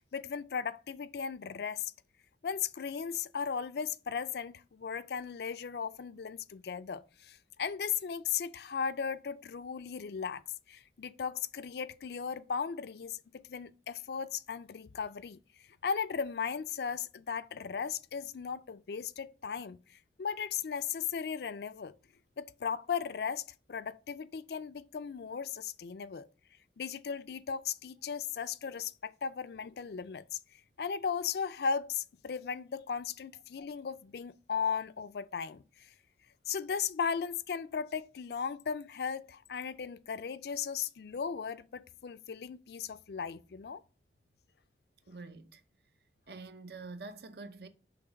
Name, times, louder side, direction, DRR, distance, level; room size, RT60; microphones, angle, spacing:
voice 1, 0.0-1.9 2.4-15.4 15.8-19.8 20.2-22.0 22.4-26.3 26.8-30.4 30.8-35.9 36.5-43.8, left 6 dB, 60° left, 0.4 m, -36 dB
voice 2, 45.1-45.6 46.3-47.7, right 3 dB, 60° right, 0.7 m, -46 dB
5.9 x 3.5 x 5.0 m
head